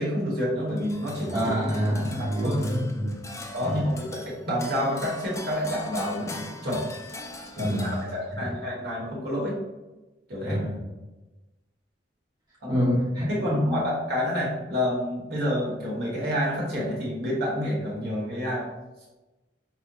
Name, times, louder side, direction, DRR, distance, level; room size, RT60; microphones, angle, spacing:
voice 1, 0.0-1.5 1.8-1.9 2.4-2.6 3.5-6.8 7.6-9.6 10.3-10.6 12.6-12.8 13.3-18.7, equal, 60° right, -4 dB, 1.2 m, -28 dB
sound 1, 0.8-8.5, left 2 dB, 15° left, 0.3 m, -41 dB
voice 2, 1.3-3.2 3.6-3.9 7.6-8.0 10.5-10.8 12.7-13.8, equal, 25° right, -7 dB, 0.8 m, -27 dB
4.9 x 2.1 x 2.7 m, 1.1 s
head